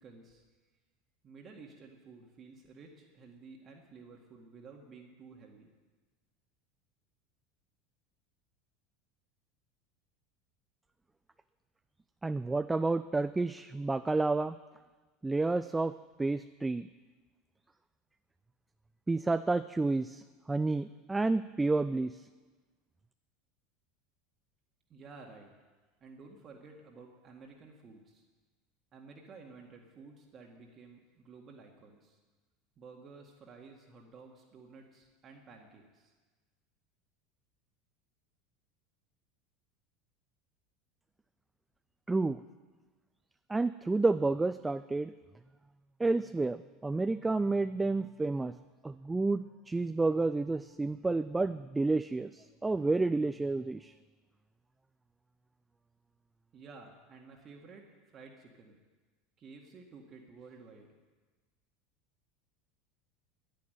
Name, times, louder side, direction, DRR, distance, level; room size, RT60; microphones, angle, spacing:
voice 1, 0.0-0.4 1.2-5.7 24.9-25.5 26.0-28.2 28.9-32.2 32.8-36.1 56.5-58.8 59.4-61.0, right 4 dB, 35° right, 0 dB, 2.0 m, -53 dB
voice 2, 12.2-14.6 15.2-15.9 16.2-16.9 19.1-22.2 42.1-42.4 43.5-45.1 46.0-48.6 48.8-53.9, right 3 dB, 10° right, 12 dB, 0.4 m, -30 dB
10.5 x 10.5 x 9.3 m, 1.3 s
figure-of-eight pair, 75°, 0 cm